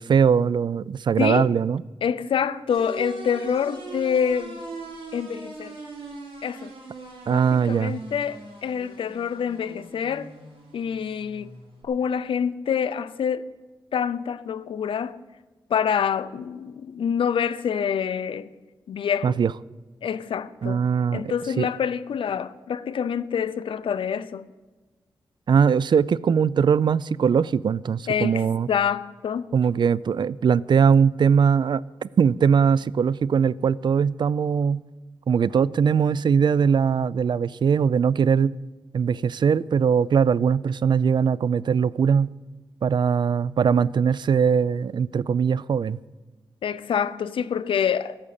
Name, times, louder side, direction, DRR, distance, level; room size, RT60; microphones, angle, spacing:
voice 1, 0.0-1.8 7.3-8.0 19.2-19.5 20.6-21.7 25.5-28.7 29.5-34.8 35.3-38.6 38.9-42.3 42.8-46.0, right 6 dB, 60° right, 0.4 m, -21 dB
voice 2, 1.2-1.5 2.0-4.6 5.1-5.7 6.4-6.7 7.3-10.3 10.7-11.5 11.8-13.4 13.9-15.2 15.7-18.5 18.9-19.4 20.0-20.8 21.1-24.5 28.1-29.6 46.6-48.2, left 7 dB, 80° left, 0.5 m, -26 dB
sound 1, 2.7-11.8, right 3 dB, 90° right, 3.5 m, -41 dB
14.0 x 8.8 x 6.7 m
cardioid pair, 70°, 9 cm